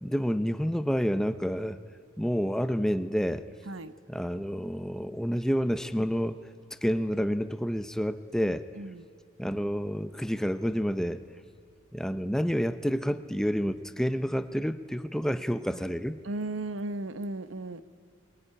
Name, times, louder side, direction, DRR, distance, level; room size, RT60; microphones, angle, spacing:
voice 1, 0.0-1.8 2.2-3.5 4.1-6.4 6.8-8.7 9.4-11.2 11.9-16.2, equal, 5° left, 12 dB, 0.6 m, -29 dB
voice 2, 8.4-9.0 16.2-17.8, right 2 dB, 85° right, 14 dB, 1.0 m, -36 dB
24.0 x 21.0 x 9.9 m, 2.6 s
head